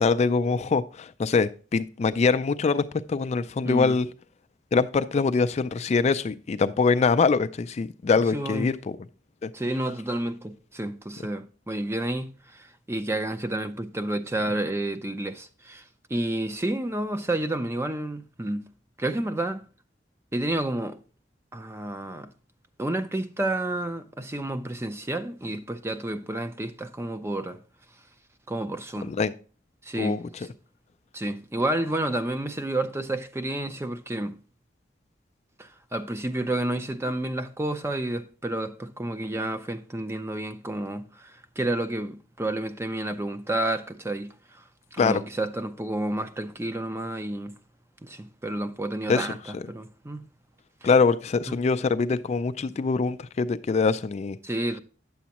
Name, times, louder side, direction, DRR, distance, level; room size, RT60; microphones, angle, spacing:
voice 1, 0.0-4.1 4.7-9.0 9.4-9.5 29.0-29.3 30.0-30.2 45.0-45.2 49.1-49.6 50.8-54.4, left 4 dB, 40° left, 0.3 m, -24 dB
voice 2, 3.6-4.0 8.3-8.7 9.5-15.8 16.1-18.6 19.0-19.6 20.3-21.0 21.5-22.3 22.8-27.6 28.5-29.1 29.8-30.5 31.1-34.3 35.6-44.6 44.9-47.5 48.0-50.2 50.8-50.9 51.5-51.6 54.4-54.8, right 1 dB, 15° right, 0.5 m, -30 dB
9.3 x 7.1 x 2.9 m
head